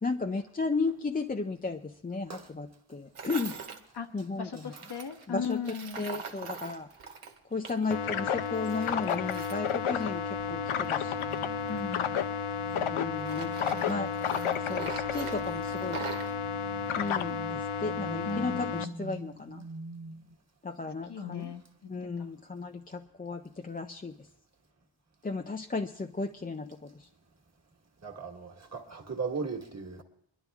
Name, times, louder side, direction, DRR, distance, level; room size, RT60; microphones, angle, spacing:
voice 1, 0.0-3.6 4.1-4.7 5.3-5.6 6.0-7.2 7.5-11.5 12.9-14.1 14.6-16.1 17.0-19.7 20.6-21.5 21.9-24.3 25.2-27.1, left 4 dB, 20° left, 0.4 m, -35 dB
Tools, 3.1-3.8 4.7-8.0 8.3-10.5 11.2-12.8 13.2-16.3, right 6 dB, 85° right, 1.3 m, -42 dB
voice 2, 4.4-6.1 11.7-12.1 13.7-14.1 18.2-19.0 21.1-21.6 22.2-22.3, left 6 dB, 50° left, 1.3 m, -37 dB
sound 1, 7.9-18.8, left 7 dB, 75° left, 0.7 m, -32 dB
sound 2, 10.4-20.3, right 3 dB, 60° right, 1.2 m, -46 dB
voice 3, 28.0-30.0, right 4 dB, 30° right, 1.5 m, -37 dB
22.5 x 11.5 x 3.5 m
wide cardioid pair, 100°, 50 cm